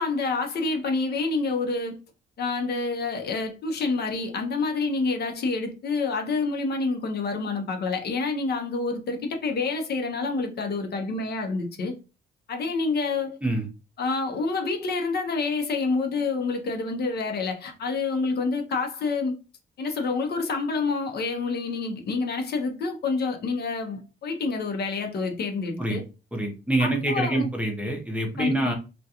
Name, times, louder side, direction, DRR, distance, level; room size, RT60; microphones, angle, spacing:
voice 1, 0.0-2.0 2.4-11.9 12.5-13.4 14.0-19.3 19.8-26.0 26.8-27.5 28.4-28.7, left 3 dB, 55° left, 0.6 m, -28 dB
voice 2, 26.3-28.7, right 2 dB, 5° right, 0.7 m, -26 dB
2.3 x 2.2 x 2.8 m
cardioid pair, 90°, 20 cm